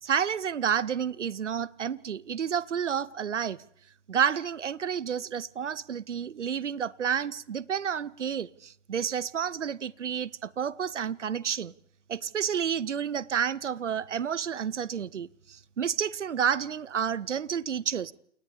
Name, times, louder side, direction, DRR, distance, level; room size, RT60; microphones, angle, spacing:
voice 1, 0.0-3.6 4.1-11.7 12.1-18.1, right 8 dB, 75° right, 0.9 m, -30 dB
29.0 x 29.0 x 3.5 m
figure-of-eight pair, 105°, 36 cm